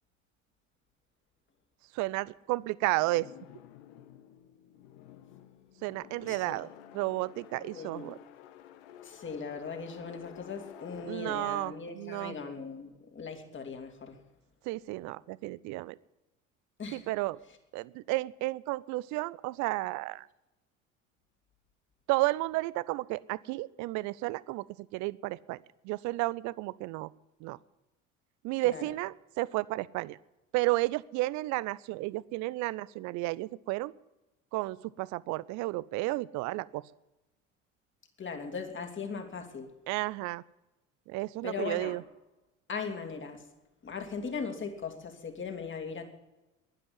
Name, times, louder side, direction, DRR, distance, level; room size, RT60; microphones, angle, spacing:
voice 1, 1.9-3.3 5.8-6.7 6.9-8.2 11.1-12.4 14.6-16.0 16.9-17.4 17.7-20.3 22.1-25.6 25.8-27.1 27.4-27.6 28.4-30.2 30.5-33.9 34.5-36.8 39.9-40.4 41.1-42.0, right 20 dB, 45° right, 22 dB, 0.6 m, -32 dB
sound 1, 3.0-13.0, left 11 dB, 60° left, 1.1 m, -52 dB
voice 2, 7.5-8.2 9.0-14.1 16.8-17.0 28.6-28.8 38.2-39.7 41.4-41.9 42.7-43.4 43.8-46.0, left 5 dB, 30° left, 4 dB, 2.7 m, -39 dB
11.0 x 11.0 x 9.8 m, 1.0 s
figure-of-eight pair, 65°, 40 cm